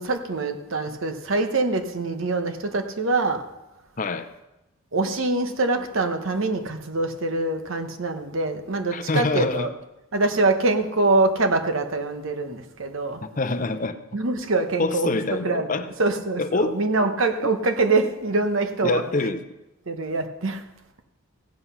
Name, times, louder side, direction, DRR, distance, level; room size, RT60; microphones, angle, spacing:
voice 1, 0.0-3.4 4.9-9.7 10.1-13.2 14.1-15.2 15.4-19.0 19.9-20.6, right 2 dB, 65° right, 6 dB, 1.0 m, -24 dB
voice 2, 4.0-4.3 8.9-9.7 13.2-14.0 14.8-15.9 16.4-16.8 18.8-19.4, left 3 dB, 35° left, 10 dB, 0.6 m, -25 dB
16.0 x 7.9 x 5.6 m, 0.98 s
head